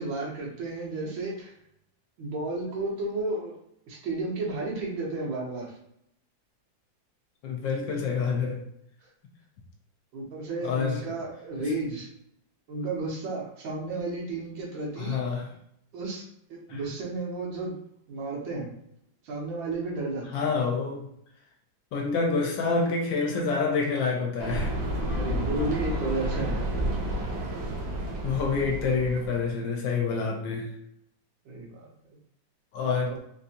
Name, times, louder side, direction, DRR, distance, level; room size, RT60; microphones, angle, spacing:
voice 1, 0.0-1.5 2.2-3.5 3.9-5.7 10.1-12.1 12.7-15.2 15.9-16.2 16.5-17.8 18.1-18.7 19.2-20.4 25.1-26.8 31.4-31.9, right 2 dB, 80° right, -3 dB, 1.7 m, -32 dB
voice 2, 7.4-8.6 10.6-11.0 15.0-15.5 16.7-16.8 20.3-21.1 21.9-24.8 28.2-30.7 32.7-33.2, left 4 dB, 75° left, 1 dB, 1.3 m, -27 dB
sound 1, 24.4-29.5, right 1 dB, 65° right, 1.1 m, -30 dB
3.8 x 2.6 x 2.8 m, 0.73 s
omnidirectional pair, 2.1 m